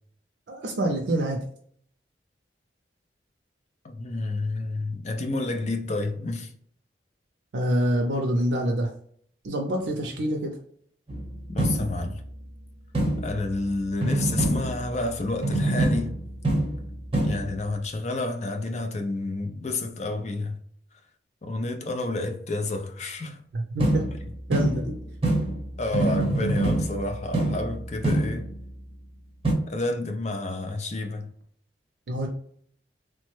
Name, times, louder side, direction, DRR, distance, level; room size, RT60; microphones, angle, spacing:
voice 1, 0.5-1.4 7.5-8.9 9.4-10.5 23.5-24.1 24.5-25.0 32.1-32.3, right 1 dB, 75° right, 0.5 m, -26 dB
voice 2, 3.8-6.5 11.5-12.2 13.2-16.1 17.2-20.6 21.4-23.4 25.8-28.5 29.7-31.3, left 2 dB, 40° left, 0.4 m, -30 dB
sound 1, 11.1-12.3 12.9-13.7 14.0-15.1 15.4-17.6 23.8-28.7 29.4-29.5, right 1 dB, 30° right, 0.8 m, -26 dB
3.1 x 2.1 x 3.1 m
head